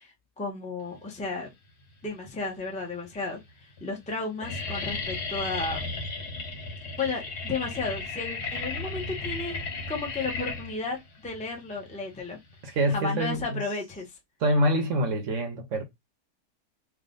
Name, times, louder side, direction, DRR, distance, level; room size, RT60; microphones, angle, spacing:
voice 1, 0.0-1.5 2.0-5.9 7.0-9.6 9.9-11.0 11.2-12.4 12.9-14.1, left 3 dB, 5° left, 0.8 m, -33 dB
sound 1, 1.8-2.4 3.1-3.2 3.4-3.8 4.1-13.0, left 3 dB, 70° left, 1.7 m, -35 dB
voice 2, 12.6-13.6 14.4-15.8, right 1 dB, 60° right, 1.0 m, -25 dB
3.5 x 2.6 x 3.7 m
omnidirectional pair, 1.7 m